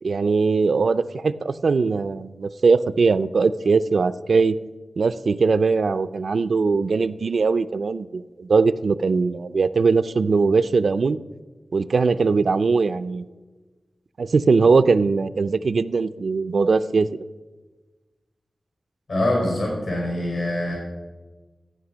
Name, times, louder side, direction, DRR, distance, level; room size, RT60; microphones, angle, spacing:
voice 1, 0.0-4.6 5.0-11.2 11.7-13.2 14.2-17.1, right 4 dB, 80° right, 13 dB, 0.4 m, -20 dB
voice 2, 19.1-20.8, left 1 dB, 80° left, -2 dB, 4.9 m, -24 dB
14.5 x 8.9 x 6.2 m, 1.3 s
wide cardioid pair, 105°, 0 cm